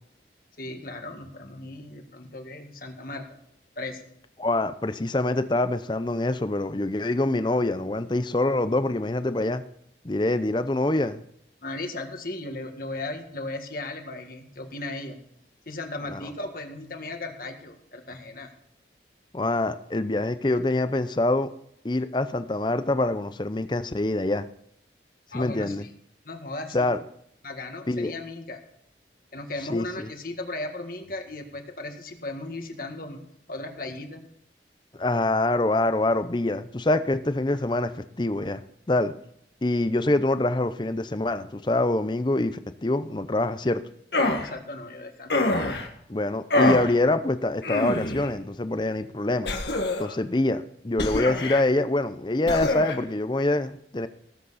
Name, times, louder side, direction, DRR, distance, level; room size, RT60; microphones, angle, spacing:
voice 1, 0.6-3.3 3.8-4.0 11.6-15.2 15.7-18.5 25.3-25.9 26.3-26.9 27.4-28.6 29.3-33.2 33.5-34.2 44.4-45.3, left 2 dB, 50° left, 4 dB, 1.8 m, -36 dB
voice 2, 4.4-9.6 10.0-11.2 16.1-16.3 19.3-21.5 21.8-24.5 25.3-25.8 26.7-27.0 27.9-28.1 29.7-30.1 34.9-38.6 38.9-39.1 39.6-43.8 46.1-49.5 50.0-54.1, left 2 dB, 25° left, 12 dB, 0.6 m, -25 dB
sound 1, 44.1-44.5 45.3-45.9 46.5-46.9 47.6-48.3 49.5-50.2 51.0-51.6 52.5-53.0, left 2 dB, 70° left, 1.7 m, -25 dB
19.0 x 8.1 x 4.1 m, 0.71 s
head